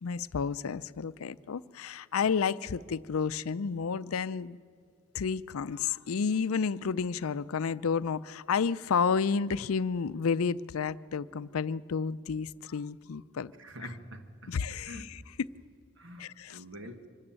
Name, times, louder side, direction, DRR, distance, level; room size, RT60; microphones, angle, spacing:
voice 1, 0.0-4.6 5.1-13.5 14.5-15.0 16.2-16.6, left 5 dB, 80° left, 17 dB, 0.5 m, -31 dB
voice 2, 13.5-14.5 14.8-15.3 16.0-17.0, equal, 60° right, 7 dB, 1.6 m, -46 dB
25.0 x 13.0 x 8.9 m, 2.3 s
head